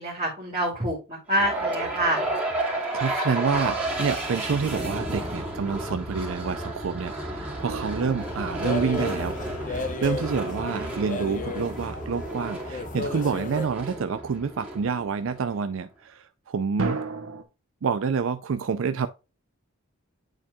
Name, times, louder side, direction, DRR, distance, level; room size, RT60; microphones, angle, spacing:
voice 1, 0.0-2.3 10.7-11.0, right 1 dB, 30° right, 2.1 m, -27 dB
sound 1, 1.3-15.5, right 1 dB, 5° right, 2.4 m, -32 dB
voice 2, 2.9-17.0 17.8-19.1, right 5 dB, 65° right, 0.4 m, -28 dB
sound 2, 7.6-9.7 16.8-17.4, right 3 dB, 90° right, 1.1 m, -33 dB
sound 3, 8.2-13.7, left 2 dB, 35° left, 0.7 m, -34 dB
9.9 x 4.4 x 2.3 m
head